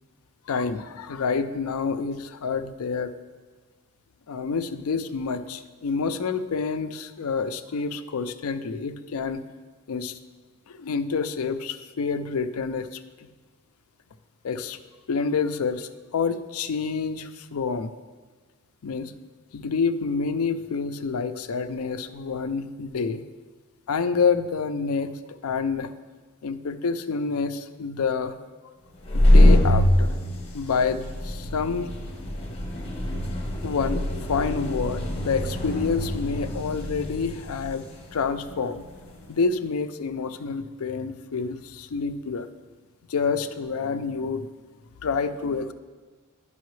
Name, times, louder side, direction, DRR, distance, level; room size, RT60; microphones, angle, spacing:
voice 1, 0.5-3.1 4.3-9.4 9.9-10.2 10.7-13.0 14.4-14.8 15.1-17.9 18.8-19.1 19.5-23.2 23.9-25.1 25.4-25.9 26.4-28.3 28.6-28.7 29.1-30.1 30.5-31.9 33.0-33.2 33.6-38.8 39.3-42.5 43.1-44.5 45.0-45.7, left 5 dB, 75° left, 10 dB, 0.4 m, -28 dB
sound 1, 28.9-39.4, left 1 dB, 25° left, 1.0 m, -24 dB
10.5 x 5.5 x 3.2 m, 1.4 s
head